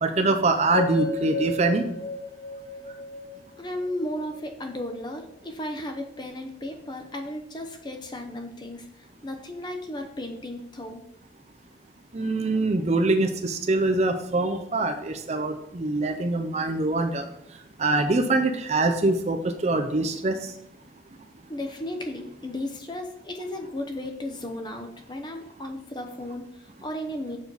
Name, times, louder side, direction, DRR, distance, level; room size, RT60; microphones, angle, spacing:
voice 1, 0.0-1.8 12.1-17.3 17.8-20.5, right 2 dB, 35° right, 6 dB, 0.6 m, -24 dB
sound 1, 0.7-4.9, left 2 dB, 50° left, 1.3 m, -33 dB
voice 2, 3.6-11.0 21.5-27.4, left 1 dB, 25° left, 4 dB, 0.8 m, -35 dB
7.0 x 6.3 x 4.0 m, 0.79 s
head